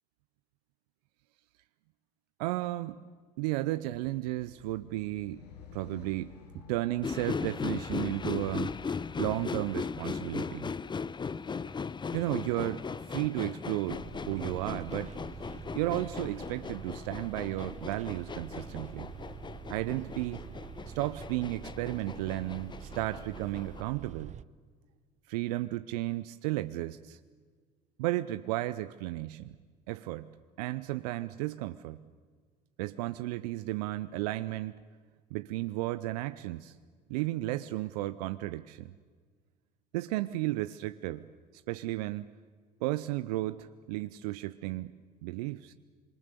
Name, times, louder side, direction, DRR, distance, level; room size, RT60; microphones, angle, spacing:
voice 1, 2.4-3.0 3.4-5.4 5.7-10.7 12.1-15.1 15.7-19.1 19.7-20.4 20.9-24.3 25.3-27.2 28.0-29.5 29.9-30.3 30.6-32.0 32.8-34.8 35.3-36.8 37.1-38.9 39.9-41.3 41.7-42.3 42.8-44.9 45.2-45.7, right 17 dB, 70° right, 12 dB, 0.7 m, -34 dB
sound 1, 4.0-10.3, left 8 dB, 85° left, 1.7 m, -55 dB
sound 2, 7.0-23.8, left 5 dB, 20° left, 0.7 m, -38 dB
Bus, 13.9-24.4, right 9 dB, 35° right, 0.7 m, -46 dB
26.5 x 23.5 x 6.8 m, 1.5 s
hypercardioid pair, 65°, 21 cm